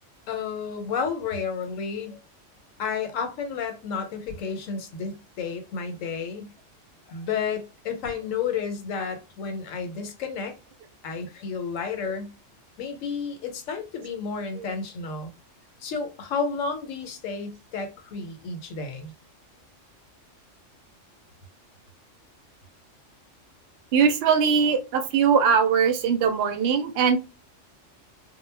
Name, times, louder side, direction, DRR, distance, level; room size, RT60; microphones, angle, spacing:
voice 1, 0.3-2.2 2.8-6.5 7.1-10.5 11.0-12.4 12.8-15.3 15.8-19.1, left 5 dB, 90° left, 1.0 m, -31 dB
voice 2, 23.9-27.2, right 6 dB, 60° right, 0.7 m, -21 dB
2.2 x 2.0 x 3.2 m
omnidirectional pair, 1.3 m